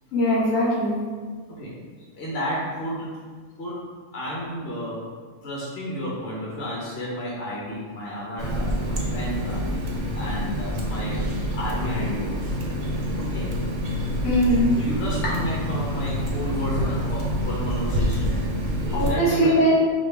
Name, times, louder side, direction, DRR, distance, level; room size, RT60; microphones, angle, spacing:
voice 1, 0.1-1.0 14.2-14.8 18.9-19.7, equal, 65° left, -7 dB, 1.5 m, -20 dB
voice 2, 2.1-3.2 3.6-3.8 4.1-5.0 5.4-9.6 10.1-11.2 11.5-12.5 13.1-13.5 14.8-18.3 18.8-19.6, equal, 50° left, -6 dB, 1.1 m, -32 dB
Water tap faucet, 8.4-19.1, equal, 60° right, 0.9 m, -27 dB
5.1 x 2.5 x 3.4 m, 1.5 s
omnidirectional pair, 1.5 m